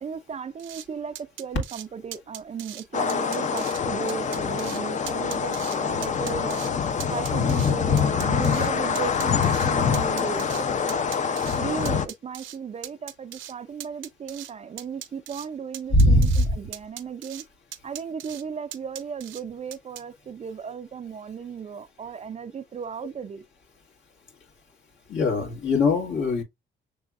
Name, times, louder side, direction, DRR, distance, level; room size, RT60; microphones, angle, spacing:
voice 1, 0.0-6.7 7.1-10.6 11.6-17.4 17.8-23.4, right 6 dB, 35° right, 0.4 m, -35 dB
sound 1, 0.6-0.9 1.2-1.9 2.1-2.8 3.1-3.8 4.1-4.8 5.1-5.8 6.0-6.7 7.0-8.7 9.0-10.6 10.9-11.6 11.9-12.6 12.8-13.5 13.8-14.5 14.8-15.5 15.7-16.5 16.7-17.4 17.7-18.4 18.7-19.4 19.7-20.0, right 11 dB, 75° right, 0.7 m, -39 dB
sound 2, 2.9-12.1, left 6 dB, 40° left, 0.5 m, -25 dB
voice 2, 15.9-16.6 25.1-26.4, left 1 dB, 70° left, 1.9 m, -20 dB
6.0 x 3.4 x 2.4 m
cardioid pair, 90°, 20 cm